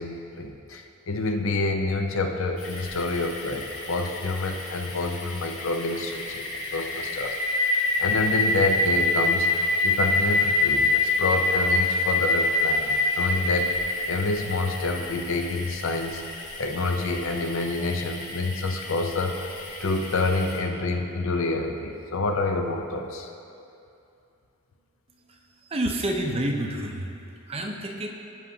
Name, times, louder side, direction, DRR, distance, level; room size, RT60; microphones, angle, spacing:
voice 1, 0.0-7.4 8.0-9.5 9.8-16.2 16.6-19.5 19.8-23.3, left 3 dB, 65° left, 4 dB, 0.6 m, -28 dB
sound 1, 2.6-20.6, left 2 dB, 80° left, 2.0 m, -27 dB
voice 2, 25.3-27.1 27.5-28.1, right 1 dB, 25° right, 2 dB, 0.6 m, -29 dB
15.0 x 5.5 x 2.8 m, 2.6 s
head